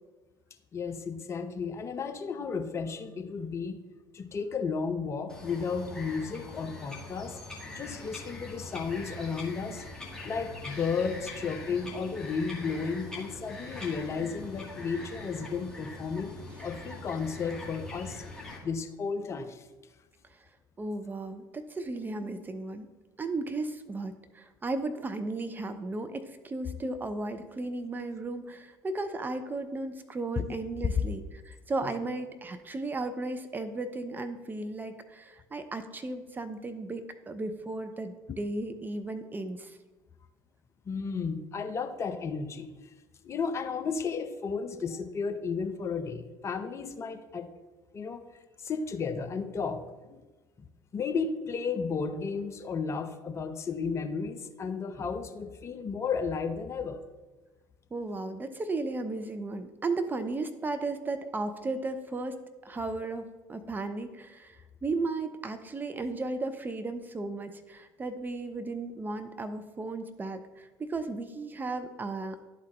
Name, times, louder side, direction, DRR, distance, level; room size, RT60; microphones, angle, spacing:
voice 1, 0.7-3.8 4.1-7.4 7.7-9.8 10.2-16.3 16.6-18.2 18.6-19.6 30.4-30.5 31.8-31.9 40.9-42.7 43.2-47.5 47.9-48.2 48.6-50.2 50.6-50.7 50.9-57.0, left 5 dB, 30° left, 8 dB, 0.6 m, -33 dB
Bird vocalization bird call bird song, 5.3-18.6, left 2 dB, 5° left, 1.7 m, -43 dB
voice 2, 20.8-22.9 23.2-39.8 57.9-62.3 62.6-72.4, right 2 dB, 20° right, 8 dB, 0.5 m, -35 dB
11.5 x 4.1 x 3.1 m, 1.2 s
figure-of-eight pair, 60°, 10 cm